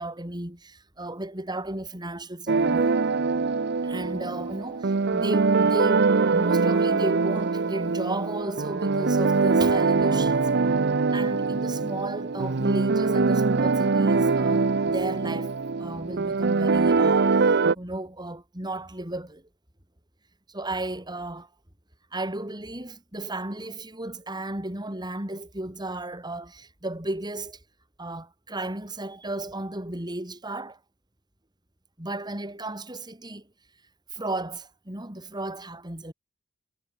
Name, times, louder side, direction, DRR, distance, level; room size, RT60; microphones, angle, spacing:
voice 1, 0.0-2.9 3.8-10.5 11.1-19.4 20.5-21.5 22.1-27.6 28.0-30.8 32.0-33.5 34.1-36.1, right 2 dB, 20° right, 4.0 m, -34 dB
sound 1, 2.5-17.8, right 4 dB, 55° right, 0.7 m, -23 dB
head